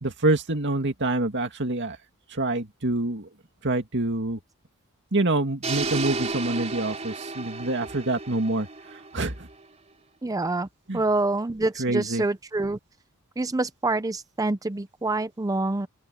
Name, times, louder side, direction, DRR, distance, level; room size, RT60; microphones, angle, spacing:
voice 1, 0.0-2.0 2.3-3.3 3.6-4.4 5.1-8.7 9.1-9.5 10.9-11.0 11.8-12.3, right 2 dB, 55° right, 2.3 m, -26 dB
sound 1, 5.6-9.7, right 3 dB, 30° right, 3.8 m, -33 dB
voice 2, 10.2-10.7 10.9-12.8 13.4-15.9, right 2 dB, 15° right, 0.5 m, -26 dB
open air
head